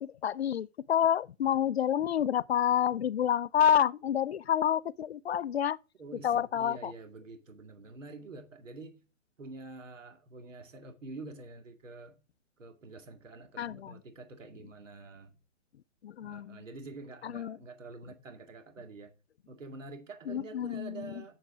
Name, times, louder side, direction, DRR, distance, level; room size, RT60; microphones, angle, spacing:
voice 1, 0.0-5.8 6.2-6.9 13.6-13.9 16.0-16.6 17.2-17.6 20.3-21.0, left 9 dB, 55° left, 0.4 m, -28 dB
voice 2, 6.0-9.0 9.4-12.2 12.6-15.3 16.2-19.1 19.5-21.4, right 3 dB, 70° right, 2.2 m, -47 dB
8.4 x 7.2 x 5.0 m
hypercardioid pair, 140°, 39 cm